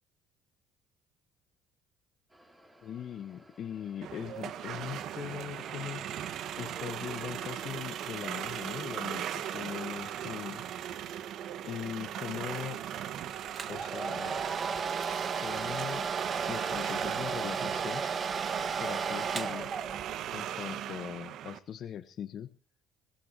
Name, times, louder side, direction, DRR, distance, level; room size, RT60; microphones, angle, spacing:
sound 1, 2.3-15.6, right 1 dB, 15° right, 5.3 m, -59 dB
voice 1, 2.8-6.0 6.6-10.7 11.6-12.8 13.7-14.4 15.4-16.1 16.5-18.0 18.8-19.7 20.3-22.5, left 9 dB, 50° left, 11 dB, 1.2 m, -40 dB
sound 2, 4.0-21.6, right 10 dB, 60° right, 1.4 m, -39 dB
Domestic sounds home sounds, 13.6-20.2, right 6 dB, 40° right, 1.4 m, -34 dB
23.5 x 17.0 x 2.8 m, 0.35 s
hypercardioid pair, 55°, 0 cm